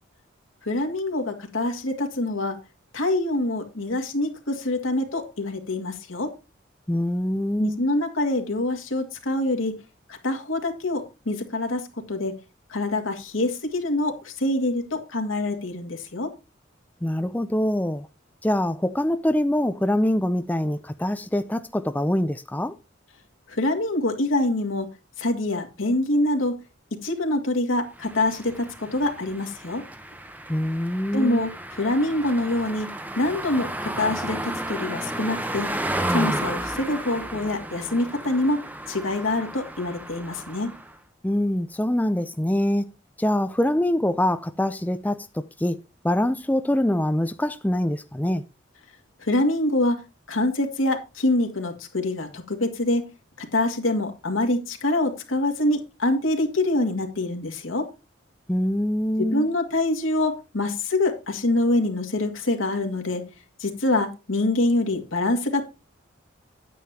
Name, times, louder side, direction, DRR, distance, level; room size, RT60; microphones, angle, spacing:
voice 1, 0.6-2.6 2.9-6.3 7.6-9.8 10.1-12.3 12.7-16.3 23.5-24.9 25.2-26.6 27.0-29.8 31.1-32.9 33.2-35.7 36.1-40.7 49.2-50.0 50.3-53.1 53.4-57.9 59.2-63.2 63.6-65.6, left 2 dB, 90° left, 2.1 m, -25 dB
voice 2, 6.9-7.8 17.0-18.1 18.4-22.7 30.5-31.5 41.2-42.9 43.2-45.8 46.0-48.4 58.5-59.5, left 1 dB, 10° left, 0.4 m, -24 dB
sound 1, 28.0-41.0, right 1 dB, 10° right, 0.8 m, -33 dB
9.6 x 9.2 x 2.8 m
head